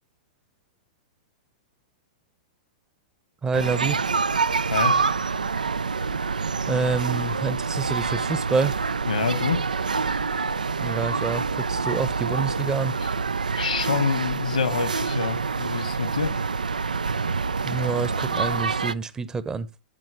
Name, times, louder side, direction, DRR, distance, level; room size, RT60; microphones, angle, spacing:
voice 1, 3.4-4.0 6.7-8.7 10.8-12.9 17.6-19.7, right 5 dB, 15° right, 0.9 m, -27 dB
sound 1, 3.5-18.9, right 5 dB, 75° right, 0.4 m, -26 dB
voice 2, 9.1-9.6 13.6-16.4, left 5 dB, 70° left, 1.6 m, -26 dB
8.6 x 7.9 x 3.0 m
figure-of-eight pair, 100°, 4 cm